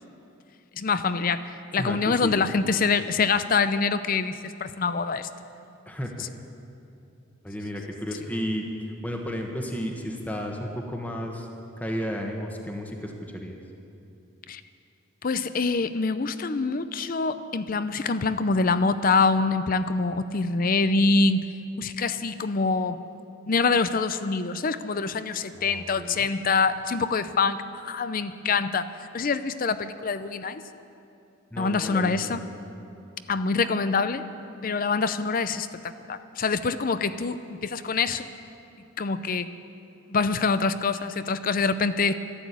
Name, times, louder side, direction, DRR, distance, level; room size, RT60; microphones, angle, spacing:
voice 1, 0.8-5.3 6.2-6.3 14.5-14.6 15.2-21.5 21.8-23.0 23.5-28.9 29.1-30.6 31.6-32.4 33.3-34.2 34.6-38.3 39.0-39.5 40.1-42.1, left 4 dB, 45° left, 12 dB, 0.5 m, -25 dB
voice 2, 1.8-2.5 5.9-6.1 7.4-8.7 9.0-11.5 11.8-13.6 25.5-26.3 31.5-32.4, equal, 10° left, 1 dB, 1.3 m, -33 dB
12.5 x 11.5 x 8.4 m, 2.7 s
head